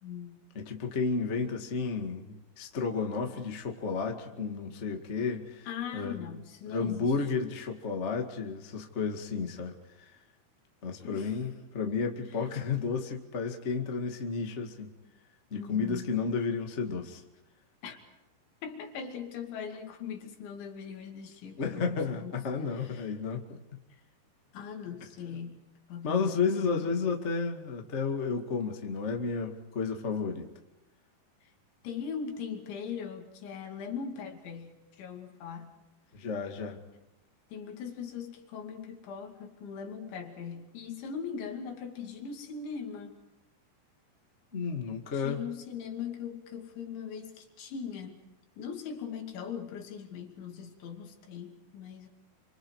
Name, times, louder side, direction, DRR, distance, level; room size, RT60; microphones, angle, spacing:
voice 1, 0.0-0.4 5.7-7.1 11.0-11.4 12.4-12.5 15.5-16.2 17.8-18.0 18.6-22.3 22.7-23.1 23.9-24.0 24.5-25.6 25.9-26.9 31.4-31.5 31.8-35.8 37.5-43.2 45.1-48.2 48.6-52.1, left 7 dB, 75° left, 3 dB, 4.9 m, -40 dB
voice 2, 0.5-5.7 5.9-6.3 6.7-9.7 10.8-14.9 15.5-17.2 21.6-23.6 26.0-30.5 36.1-36.8 44.5-45.4, left 5 dB, 55° left, 3 dB, 0.7 m, -32 dB
28.5 x 26.5 x 4.8 m, 0.95 s
omnidirectional pair, 5.3 m